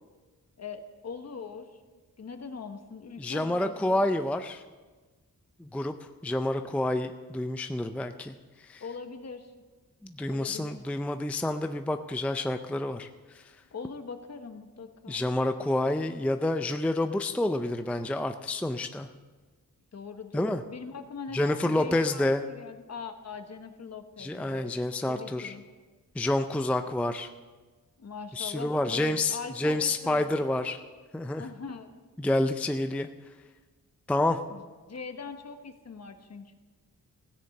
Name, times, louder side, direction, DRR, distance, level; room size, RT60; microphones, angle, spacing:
voice 1, 0.6-1.8 2.2-4.1 8.8-9.5 10.3-10.8 13.7-15.2 19.9-24.7 25.1-25.6 28.0-30.5 31.4-31.9 32.4-32.5 34.5-34.6 34.9-36.5, left 5 dB, 45° left, 7 dB, 1.1 m, -41 dB
voice 2, 3.2-4.6 5.6-8.8 10.0-13.5 15.1-19.1 20.3-20.6 21.3-22.4 24.2-25.5 26.2-27.3 28.3-30.8 31.1-31.5 32.2-33.1 34.1-34.4, left 1 dB, 5° left, 8 dB, 0.4 m, -29 dB
16.0 x 6.8 x 7.6 m, 1.3 s
wide cardioid pair, 155°, 35 cm